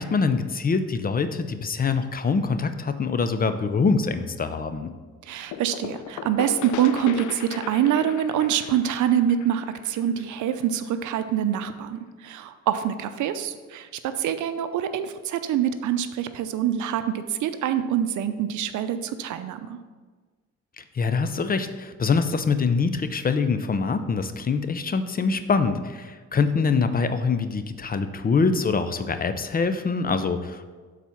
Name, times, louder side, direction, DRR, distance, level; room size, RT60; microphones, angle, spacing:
voice 1, 0.0-4.9 20.8-30.7, left 4 dB, 30° left, 10 dB, 0.5 m, -24 dB
voice 2, 5.2-19.8, right 10 dB, 75° right, 10 dB, 0.6 m, -25 dB
sound 1, 5.5-11.1, left 10 dB, 75° left, 0.5 m, -37 dB
7.3 x 4.1 x 5.7 m, 1.4 s
cardioid pair, 90°, 30 cm